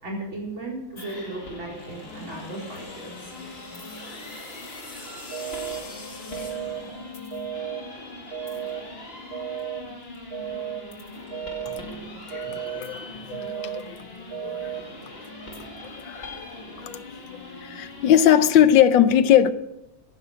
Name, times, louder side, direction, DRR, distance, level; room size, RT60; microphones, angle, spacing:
voice 1, 0.0-3.3, right 2 dB, 80° right, -2 dB, 5.1 m, -36 dB
sound 1, 1.0-18.6, left 2 dB, 30° left, 2.0 m, -41 dB
sound 2, 1.6-7.5, left 3 dB, 90° left, 4.3 m, -44 dB
sound 3, 5.3-5.8 6.3-6.8 7.3-7.8 8.3-8.8 9.3-9.8 10.3-10.8 11.3-11.8 12.3-12.8 13.3-13.8 14.3-14.8, right 10 dB, 50° right, 0.7 m, -33 dB
voice 2, 12.3-14.0 14.4-14.6 16.0-16.5 16.8-17.0 17.6-19.5, left 10 dB, 75° left, 13 dB, 1.4 m, -20 dB
15.0 x 10.5 x 6.3 m, 0.87 s
omnidirectional pair, 2.1 m